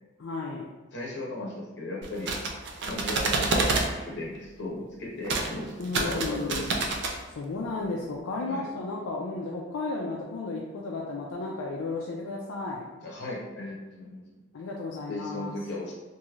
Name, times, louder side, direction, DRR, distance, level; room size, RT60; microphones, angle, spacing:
voice 1, 0.2-0.7 5.8-6.7 7.3-12.9 14.5-15.5, left 3 dB, 70° left, -3 dB, 0.4 m, -34 dB
voice 2, 0.9-2.4 2.8-6.7 8.4-8.7 13.0-14.2 15.1-15.9, left 1 dB, 55° left, -4 dB, 0.9 m, -36 dB
sound 1, 2.0-3.9 5.2-5.5 5.8-7.2, right 3 dB, 55° right, 0.4 m, -27 dB
3.1 x 2.6 x 2.4 m, 1.2 s
head